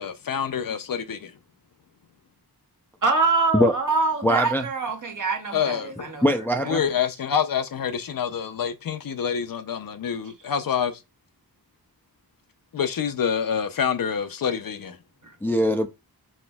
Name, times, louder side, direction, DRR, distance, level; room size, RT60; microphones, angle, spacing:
voice 1, 0.0-1.3 5.5-6.1 6.7-11.0 12.7-15.0, left 7 dB, 65° left, 0.6 m, -27 dB
voice 2, 3.0-6.2, right 3 dB, 55° right, 1.1 m, -24 dB
voice 3, 4.2-4.7 6.2-6.8 15.4-15.9, equal, 5° left, 0.4 m, -21 dB
4.3 x 4.2 x 2.3 m
wide cardioid pair, 65°, 37 cm